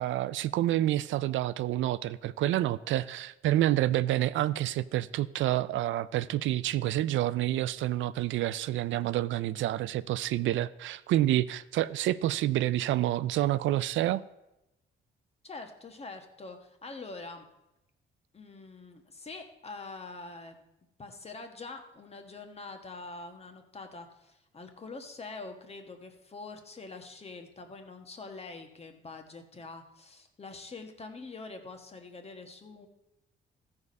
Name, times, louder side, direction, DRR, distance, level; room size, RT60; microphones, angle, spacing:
voice 1, 0.0-14.2, right 14 dB, 75° right, 0.4 m, -28 dB
voice 2, 15.4-17.4 18.3-20.6 21.0-32.9, left 3 dB, 30° left, 1.4 m, -45 dB
14.0 x 4.8 x 5.3 m
cardioid pair, 90°, 20 cm